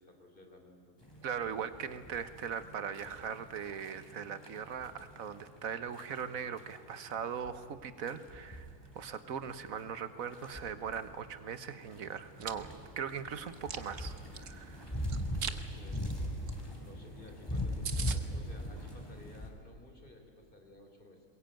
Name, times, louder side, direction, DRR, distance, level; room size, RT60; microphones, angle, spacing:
voice 1, 0.0-1.1 15.4-16.1 16.9-21.2, left 2 dB, 40° left, 3 dB, 3.3 m, -55 dB
sound 1, 1.0-19.5, equal, 20° left, 3.3 m, -42 dB
voice 2, 1.2-8.7 8.9-14.9, right 7 dB, 90° right, 12 dB, 1.5 m, -40 dB
Chewing mastication, 12.2-12.5 13.0-14.5 15.1-15.6 15.9-16.1 16.5-16.6 16.8-16.9 17.3-17.4 17.6-17.7 17.8-18.2, right 7 dB, 70° right, 1.4 m, -39 dB
22.0 x 22.0 x 9.1 m, 2.1 s
omnidirectional pair, 1.4 m